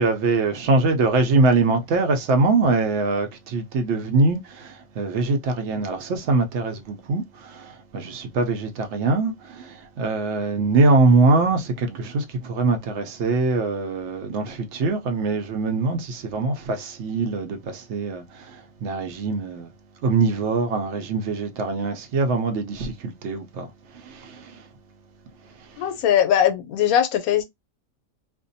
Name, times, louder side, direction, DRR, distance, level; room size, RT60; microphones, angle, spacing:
voice 1, 0.0-19.7 20.0-24.7 25.6-25.9, right 3 dB, 65° right, 0.8 m, -23 dB
voice 2, 25.8-27.4, left 10 dB, 85° left, 1.0 m, -20 dB
2.5 x 2.2 x 2.6 m
omnidirectional pair, 1.5 m